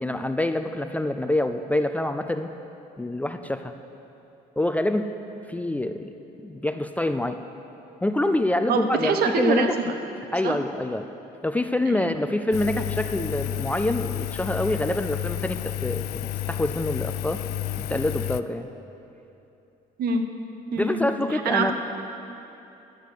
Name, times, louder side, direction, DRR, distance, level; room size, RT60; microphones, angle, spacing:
voice 1, 0.0-2.5 3.0-3.7 4.6-5.1 5.5-6.1 6.4-7.4 8.0-9.7 10.3-11.1 11.4-17.4 17.8-18.7 20.8-21.7, left 1 dB, 10° left, 8 dB, 0.4 m, -26 dB
voice 2, 8.7-9.9 10.4-10.6 11.9-12.1 20.0-20.2 20.7-21.7, right 4 dB, 65° right, 6 dB, 1.1 m, -25 dB
Engine, 12.5-18.4, left 13 dB, 80° left, 0.4 m, -31 dB
11.0 x 8.1 x 6.6 m, 2.9 s
cardioid pair, 110°, 17 cm